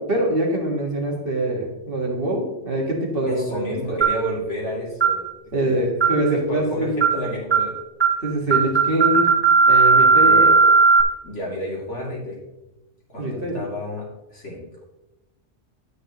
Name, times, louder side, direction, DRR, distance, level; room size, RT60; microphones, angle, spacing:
voice 1, 0.0-4.0 5.5-7.0 8.2-9.3 9.7-10.5 13.2-13.6, right 1 dB, 50° right, -1 dB, 1.8 m, -24 dB
voice 2, 3.2-5.2 5.6-5.9 6.3-7.8 10.2-10.5 11.2-12.4 13.1-14.8, equal, 70° left, -4 dB, 2.8 m, -30 dB
sound 1, 4.0-4.3 5.0-5.2 6.0-6.3 7.0-7.2 7.5-7.7 8.0-8.2 8.5-11.0, right 4 dB, 30° right, 0.7 m, -16 dB
9.5 x 8.9 x 2.9 m, 0.98 s
omnidirectional pair, 1.3 m